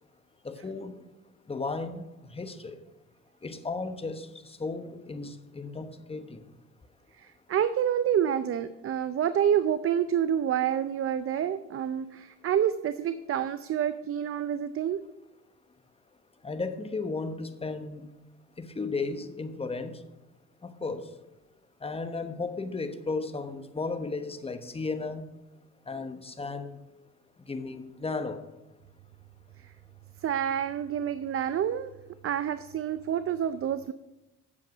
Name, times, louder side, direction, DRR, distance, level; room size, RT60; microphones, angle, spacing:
voice 1, 0.4-1.0 1.5-2.0 2.3-2.8 3.4-6.4 16.4-18.1 18.6-20.0 20.6-21.1 21.8-25.3 25.9-26.8 27.5-28.4, left 3 dB, 20° left, 1.0 m, -34 dB
voice 2, 7.2-15.0 29.6-29.7 30.2-31.9 32.2-33.9, right 9 dB, 50° right, 0.5 m, -28 dB
8.4 x 7.1 x 6.0 m
cardioid pair, 90°, 30 cm